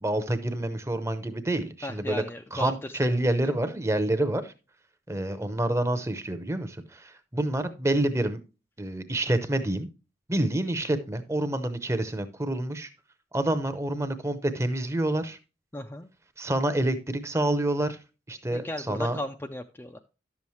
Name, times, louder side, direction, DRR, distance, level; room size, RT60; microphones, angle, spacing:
voice 1, 0.0-2.2 2.5-4.5 5.1-8.4 8.8-9.9 10.3-12.9 13.3-15.4 16.4-18.0 18.3-19.2, right 1 dB, 15° right, 0.7 m, -27 dB
voice 2, 1.8-3.5 15.7-16.1 18.5-20.0, left 1 dB, 15° left, 0.4 m, -36 dB
11.0 x 7.1 x 3.1 m
head